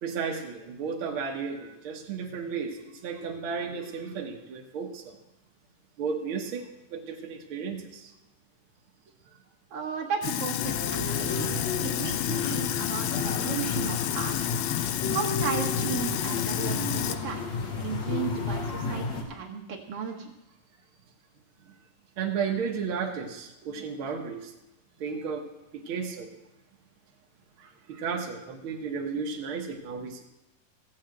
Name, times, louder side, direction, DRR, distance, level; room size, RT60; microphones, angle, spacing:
voice 1, 0.0-5.2 6.0-8.1 22.2-24.5 25.0-25.5 25.7-26.3 27.6-30.2, right 5 dB, 90° right, 2 dB, 1.1 m, -33 dB
voice 2, 9.7-11.5 11.8-14.4 15.1-17.5 17.8-20.3, right 7 dB, 50° right, 0 dB, 2.0 m, -35 dB
Sink (filling or washing), 10.2-17.2, left 12 dB, 85° left, 1.8 m, -30 dB
sound 1, 10.6-19.2, left 4 dB, 60° left, 2.3 m, -32 dB
16.5 x 5.6 x 7.8 m, 0.94 s
omnidirectional pair, 4.2 m